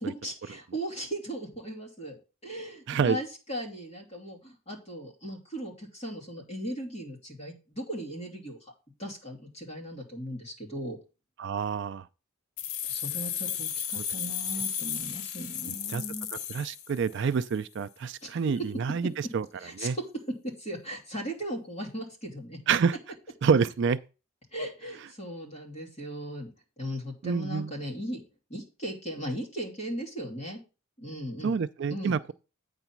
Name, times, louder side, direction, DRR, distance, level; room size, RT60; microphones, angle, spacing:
voice 1, 0.0-8.7 9.0-11.0 12.8-16.3 18.2-18.7 19.6-19.9 20.4-22.6 24.5-26.5 26.8-28.2 28.5-30.6 31.0-31.6 31.9-32.1, equal, 30° left, 2.7 m, -37 dB
voice 2, 11.4-12.0 15.9-16.0 16.5-19.5 19.8-20.0 22.7-23.0 23.4-24.0 27.2-27.7 31.4-32.3, right 6 dB, 55° right, 0.4 m, -27 dB
sound 1, 12.6-17.4, left 9 dB, 85° left, 0.6 m, -34 dB
9.0 x 4.0 x 6.0 m
head